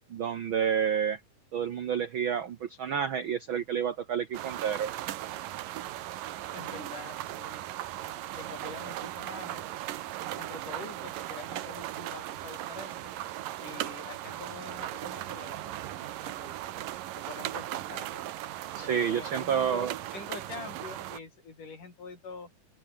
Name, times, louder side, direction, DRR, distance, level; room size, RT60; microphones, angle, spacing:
voice 1, 0.1-1.2 1.5-4.9 18.7-19.9, right 8 dB, 75° right, 1.1 m, -29 dB
sound 1, 4.3-21.2, right 14 dB, 90° right, 2.9 m, -38 dB
voice 2, 6.5-7.6 8.4-9.6 10.4-13.1 13.6-16.8 17.1-18.3 18.8-22.5, left 4 dB, 70° left, 7.4 m, -45 dB
open air
omnidirectional pair, 3.8 m